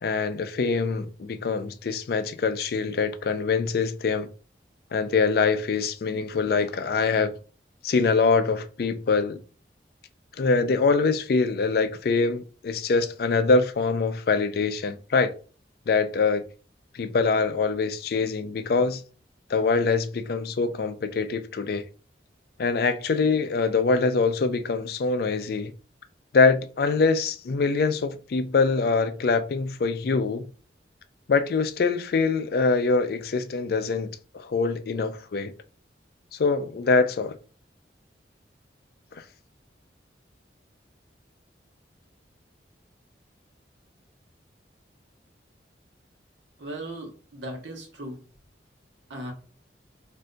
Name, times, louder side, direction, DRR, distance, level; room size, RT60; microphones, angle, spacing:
voice 1, 0.0-4.3 4.9-7.3 7.8-9.4 10.4-15.4 15.9-16.4 16.9-19.0 19.5-21.8 22.6-25.7 26.3-30.5 31.3-35.5 36.3-37.4, left 4 dB, 55° left, 0.4 m, -24 dB
voice 2, 46.6-48.2 49.1-49.3, right 1 dB, 80° right, 1.0 m, -37 dB
2.6 x 2.2 x 3.8 m
head